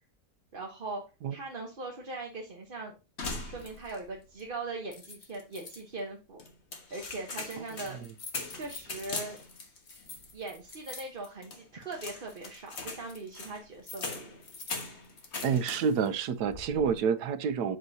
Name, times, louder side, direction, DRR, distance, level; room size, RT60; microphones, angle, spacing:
voice 1, 0.5-1.0 1.3-3.0 3.4-6.4 6.9-8.0 8.5-9.4 10.3-14.4, right 3 dB, 35° right, 1.1 m, -40 dB
sound 1, 3.2-4.1 4.4-4.5 4.9-5.8 6.4-16.1 16.4-16.9, left 3 dB, 45° left, 1.5 m, -41 dB
voice 2, 15.4-17.8, right 6 dB, 75° right, 1.3 m, -28 dB
8.0 x 6.3 x 2.7 m
omnidirectional pair, 1.7 m